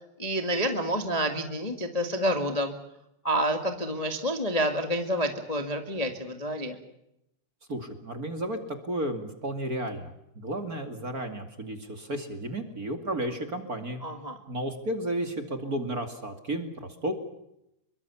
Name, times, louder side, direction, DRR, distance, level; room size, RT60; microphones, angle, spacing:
voice 1, 0.2-2.7 3.2-6.8 14.0-14.4, equal, 15° left, 5 dB, 1.5 m, -28 dB
voice 2, 7.7-14.0 14.5-17.1, right 1 dB, 30° right, 6 dB, 2.5 m, -33 dB
27.0 x 23.5 x 7.1 m, 0.82 s
omnidirectional pair, 3.4 m